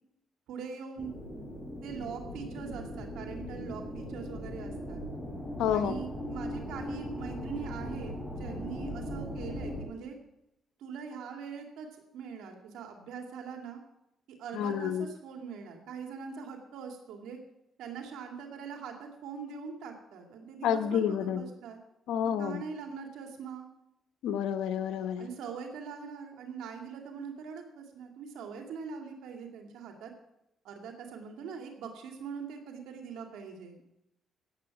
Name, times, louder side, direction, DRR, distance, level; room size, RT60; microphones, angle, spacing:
voice 1, 0.5-1.2 1.8-5.0 5.6-10.2 10.8-11.9 12.1-13.8 14.4-17.4 17.8-21.8 22.2-23.7 25.2-30.1 30.6-33.7, right 6 dB, 85° right, 3 dB, 2.4 m, -42 dB
sound 1, 1.0-9.8, equal, 10° left, 6.2 m, -39 dB
voice 2, 5.6-6.0 14.5-15.0 20.6-21.5 22.1-22.6 24.2-25.3, left 9 dB, 90° left, 10 dB, 1.1 m, -29 dB
17.5 x 8.1 x 6.0 m, 0.83 s
cardioid pair, 90°, 0 cm